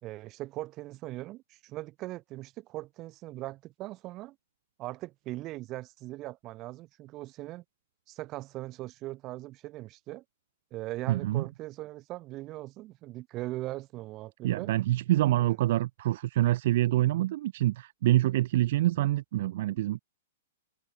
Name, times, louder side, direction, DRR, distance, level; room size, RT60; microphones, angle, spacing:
voice 1, 0.0-4.4 4.8-7.6 8.1-10.2 10.7-14.7 15.4-15.6 19.0-19.1, right 17 dB, 35° right, 1.9 m, -40 dB
voice 2, 11.1-11.4 14.4-20.0, right 15 dB, 55° right, 0.3 m, -26 dB
hypercardioid pair, 115°, 0 cm